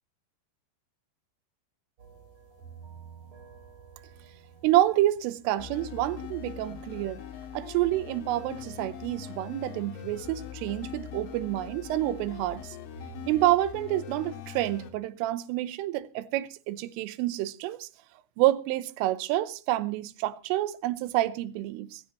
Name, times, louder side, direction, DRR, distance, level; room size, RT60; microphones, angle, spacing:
sound 1, 2.0-13.4, right 5 dB, 35° right, 4.6 m, -52 dB
voice 1, 4.6-7.2 7.5-12.7 13.3-17.9 18.4-22.0, right 15 dB, 80° right, 3.3 m, -28 dB
sound 2, 5.6-14.9, left 9 dB, 75° left, 4.2 m, -42 dB
19.5 x 15.5 x 3.0 m
omnidirectional pair, 5.9 m